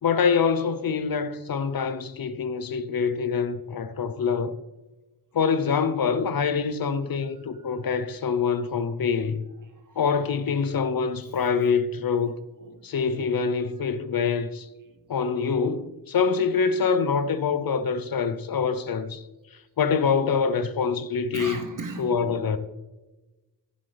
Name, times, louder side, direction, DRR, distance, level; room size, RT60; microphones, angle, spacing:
voice 1, 0.0-4.6 5.3-9.4 10.0-12.4 12.8-14.7 15.1-19.2 19.8-21.6 22.0-22.6, left 6 dB, 55° left, 0.8 m, -25 dB
voice 2, 7.5-8.0 9.8-10.3 12.6-12.9 13.6-13.9 18.5-18.6 21.3-22.6, right 3 dB, 50° right, 1.3 m, -40 dB
15.0 x 7.6 x 3.4 m
wide cardioid pair, 90°, 41 cm